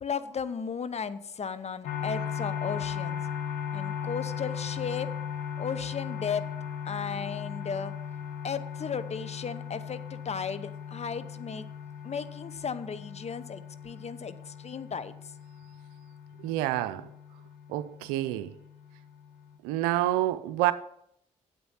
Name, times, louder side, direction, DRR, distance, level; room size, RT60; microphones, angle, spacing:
voice 1, 0.0-3.2 3.7-5.1 5.6-7.9 8.4-11.7 12.0-15.3, left 6 dB, 45° left, 0.9 m, -35 dB
sound 1, 1.8-19.6, left 8 dB, 85° left, 1.0 m, -38 dB
voice 2, 16.4-17.1 17.7-18.5 19.6-20.7, right 15 dB, 90° right, 0.5 m, -28 dB
8.6 x 8.1 x 5.7 m
hypercardioid pair, 45°, 15 cm